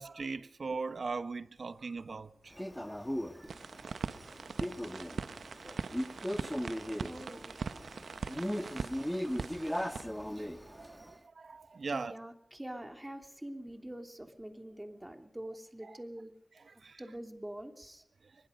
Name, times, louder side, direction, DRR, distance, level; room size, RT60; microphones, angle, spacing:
voice 1, 0.0-2.7 3.4-3.5 8.4-8.9 9.6-9.7 10.0-12.1 15.8-16.0 16.7-17.0, right 4 dB, 70° right, 1.0 m, -41 dB
Male speech man speaking, 2.6-11.1, equal, 5° left, 1.3 m, -38 dB
sound 1, 3.5-10.0, right 5 dB, 90° right, 0.8 m, -41 dB
voice 2, 6.9-7.6 11.9-16.3 17.0-18.0, right 1 dB, 15° right, 3.1 m, -45 dB
23.0 x 21.5 x 5.3 m
wide cardioid pair, 65°, 0 cm